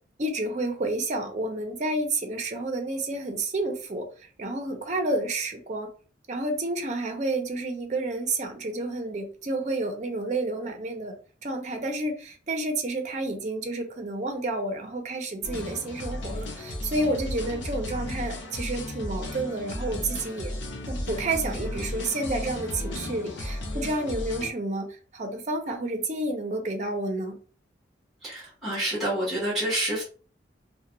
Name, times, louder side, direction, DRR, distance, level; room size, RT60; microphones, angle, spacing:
voice 1, 0.2-5.9 6.3-11.2 11.4-20.5 20.9-27.4, right 2 dB, 40° right, 4 dB, 0.5 m, -30 dB
sound 1, 15.4-24.5, left 1 dB, 75° left, 0.6 m, -34 dB
voice 2, 28.2-30.0, right 1 dB, ahead, -6 dB, 1.0 m, -28 dB
2.4 x 2.1 x 2.9 m, 0.39 s
head